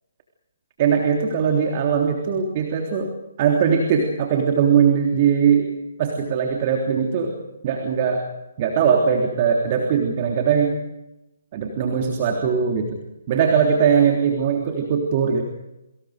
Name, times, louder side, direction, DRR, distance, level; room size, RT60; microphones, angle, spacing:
voice 1, 0.8-3.1 3.4-5.7 6.0-7.4 7.6-8.2 8.6-10.8 11.5-13.0 13.3-15.4, right 7 dB, 35° right, 2 dB, 3.4 m, -20 dB
28.5 x 25.5 x 5.2 m, 0.97 s
figure-of-eight pair, 140°, 0 cm